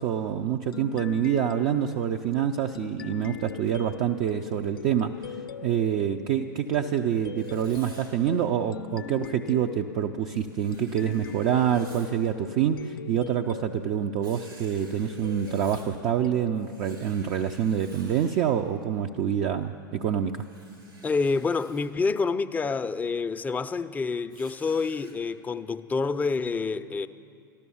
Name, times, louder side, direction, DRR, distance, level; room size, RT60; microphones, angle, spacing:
voice 1, 0.0-20.4, right 9 dB, 45° right, 0.6 m, -26 dB
sound 1, 0.7-17.9, left 9 dB, 80° left, 0.4 m, -42 dB
Writing, 7.4-8.2 10.3-12.1 14.2-16.0 16.5-18.5 20.3-21.9 24.3-25.1, right 2 dB, 90° right, 3.3 m, -52 dB
voice 2, 21.0-27.1, left 4 dB, 15° left, 0.5 m, -27 dB
13.5 x 12.5 x 7.1 m
hypercardioid pair, 100°, 12 cm